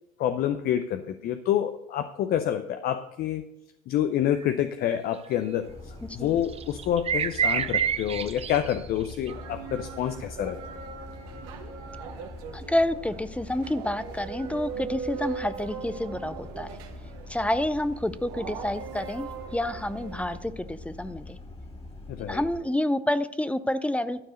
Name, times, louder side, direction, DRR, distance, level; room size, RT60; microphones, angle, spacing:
voice 1, 0.2-3.4 3.9-10.6 22.1-22.4, left 10 dB, 55° left, 9 dB, 0.6 m, -28 dB
sound 1, 4.4-4.5 4.9-5.1 6.5-9.3, right 8 dB, 35° right, 0.6 m, -27 dB
sound 2, 5.6-22.6, left 2 dB, 30° left, 2.3 m, -44 dB
sound 3, 9.3-20.4, right 6 dB, 85° right, 1.5 m, -40 dB
voice 2, 12.5-16.7 17.3-21.4 22.2-24.2, left 1 dB, 5° left, 14 dB, 0.5 m, -29 dB
12.0 x 4.6 x 6.4 m, 0.89 s
supercardioid pair, 90°, 19 cm